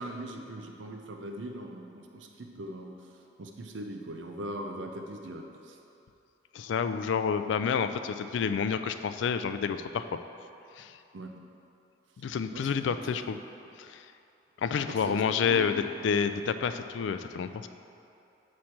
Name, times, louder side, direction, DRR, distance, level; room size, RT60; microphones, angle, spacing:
voice 1, 0.0-5.8 11.1-11.5 12.5-12.7 13.1-13.2 14.8-15.7, right 1 dB, 80° right, 3 dB, 0.5 m, -40 dB
voice 2, 6.5-10.0 10.8-11.0 12.2-13.4 13.8-14.0 14.6-17.7, left 6 dB, 80° left, 10 dB, 0.3 m, -29 dB
8.5 x 3.2 x 5.8 m, 2.7 s
head